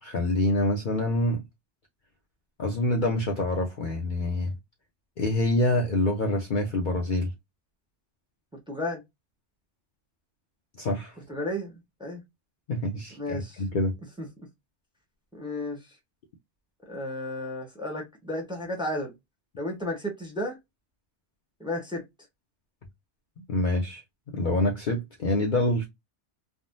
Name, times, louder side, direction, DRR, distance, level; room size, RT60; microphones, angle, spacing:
voice 1, 0.0-1.4 2.6-4.5 5.2-7.3 10.8-11.1 12.7-13.9 23.5-25.9, left 1 dB, 50° left, 0.7 m, -26 dB
voice 2, 8.7-9.0 11.3-12.2 13.2-13.6 14.2-14.3 15.3-15.8 16.9-19.1 19.6-20.6 21.6-22.0, left 1 dB, 5° right, 0.9 m, -33 dB
3.6 x 2.0 x 2.5 m
omnidirectional pair, 1.2 m